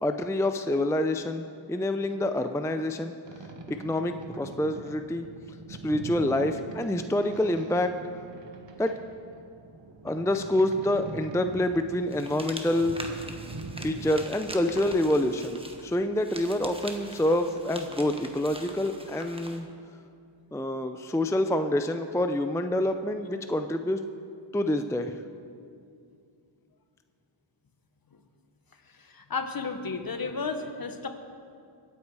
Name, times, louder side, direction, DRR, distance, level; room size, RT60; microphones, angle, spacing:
voice 1, 0.0-3.1 3.7-5.3 5.7-7.9 8.8-8.9 10.0-13.2 13.8-19.7 20.5-24.0 24.5-25.2, left 1 dB, 5° left, 8 dB, 0.5 m, -27 dB
Boat Water vehicle, 3.2-14.1, right 3 dB, 60° right, 1.3 m, -43 dB
sound 1, 12.1-19.6, right 1 dB, 10° right, 1.3 m, -43 dB
voice 2, 28.8-31.1, left 4 dB, 45° left, 7 dB, 1.2 m, -33 dB
23.5 x 8.6 x 4.8 m, 2.4 s
wide cardioid pair, 80°, 49 cm